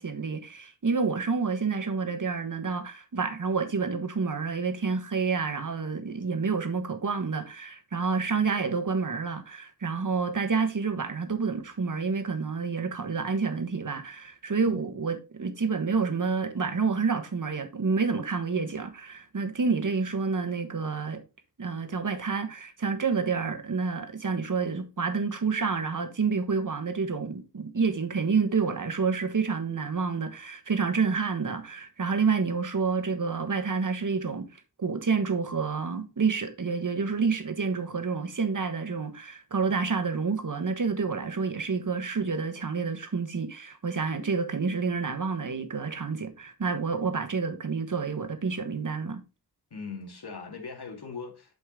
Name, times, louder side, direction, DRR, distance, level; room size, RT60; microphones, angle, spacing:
voice 1, 0.0-21.2 21.6-34.5 34.8-49.2, right 5 dB, 50° right, 1.4 m, -29 dB
voice 2, 49.7-51.6, left 5 dB, 75° left, 2.2 m, -40 dB
8.1 x 5.3 x 3.8 m
wide cardioid pair, 80°, 39 cm